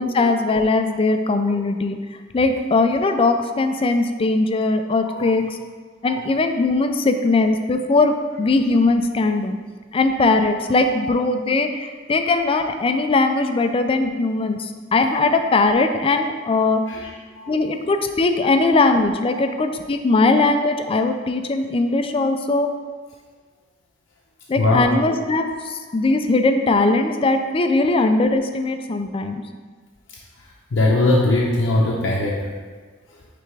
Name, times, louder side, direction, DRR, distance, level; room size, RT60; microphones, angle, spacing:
voice 1, 0.0-2.0 2.3-5.4 6.0-9.6 9.9-16.8 17.5-22.7 24.5-29.4, left 3 dB, 30° left, 7 dB, 0.4 m, -20 dB
voice 2, 5.1-5.4 6.0-6.2 16.9-17.1 17.3-17.6 18.4-18.5 19.3-19.4 24.6-24.9 30.7-32.5, left 2 dB, 90° left, -4 dB, 0.7 m, -21 dB
9.2 x 3.4 x 3.3 m, 1.5 s
head